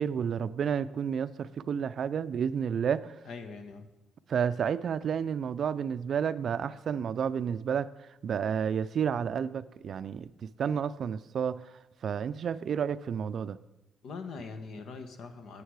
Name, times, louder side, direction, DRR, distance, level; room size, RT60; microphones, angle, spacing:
voice 1, 0.0-3.2 4.3-11.7 12.0-13.6, right 7 dB, 60° right, 15 dB, 0.4 m, -31 dB
voice 2, 3.3-3.9 14.0-15.6, left 4 dB, 75° left, 8 dB, 1.1 m, -42 dB
10.0 x 8.8 x 4.8 m, 0.96 s
cardioid pair, 90°, 0 cm